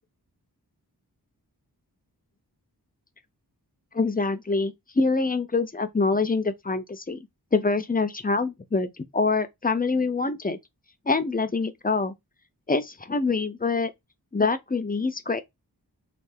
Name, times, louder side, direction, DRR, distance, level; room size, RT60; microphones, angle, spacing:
voice 1, 3.9-10.6 11.1-12.1 12.7-13.9 14.3-15.4, left 3 dB, 25° left, 0.5 m, -25 dB
3.2 x 2.4 x 3.5 m
wide cardioid pair, 55°, 39 cm